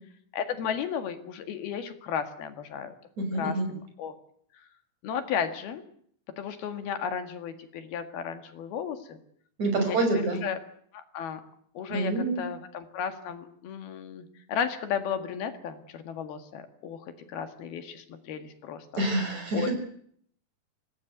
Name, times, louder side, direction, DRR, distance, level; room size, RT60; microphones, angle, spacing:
voice 1, 0.3-2.9 3.3-4.1 5.0-5.8 6.4-9.2 9.7-10.6 10.9-11.4 11.8-19.0 19.5-19.7, left 7 dB, 80° left, 8 dB, 3.9 m, -34 dB
voice 2, 3.2-3.7 9.6-10.4 11.9-12.4 19.0-19.7, right 2 dB, 45° right, 5 dB, 7.6 m, -27 dB
26.0 x 19.0 x 8.2 m, 0.64 s
omnidirectional pair, 4.4 m